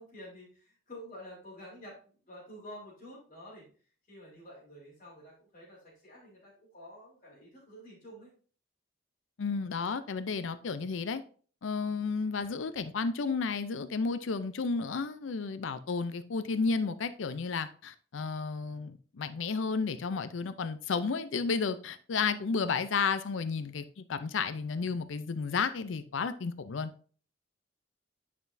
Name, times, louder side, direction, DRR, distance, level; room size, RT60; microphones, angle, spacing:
voice 1, 0.0-3.7 4.1-8.3, equal, 40° left, 3.6 m, -49 dB
voice 2, 9.4-11.2 11.6-26.9, left 4 dB, 85° left, 0.5 m, -32 dB
9.4 x 5.9 x 2.6 m
head